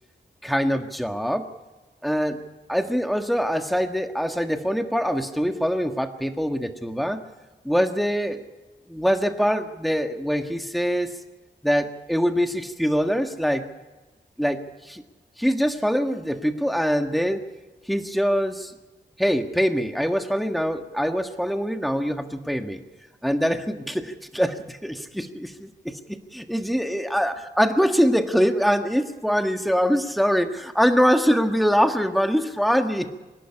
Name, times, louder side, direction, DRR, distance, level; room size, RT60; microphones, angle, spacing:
voice 1, 0.4-1.5 2.0-7.2 7.6-8.4 8.9-11.2 11.6-13.7 14.4-15.0 15.4-17.4 17.9-18.7 19.2-22.8 23.2-33.1, equal, ahead, 6 dB, 1.5 m, -23 dB
25.0 x 11.5 x 9.9 m, 1.1 s
wide cardioid pair, 105°, 19 cm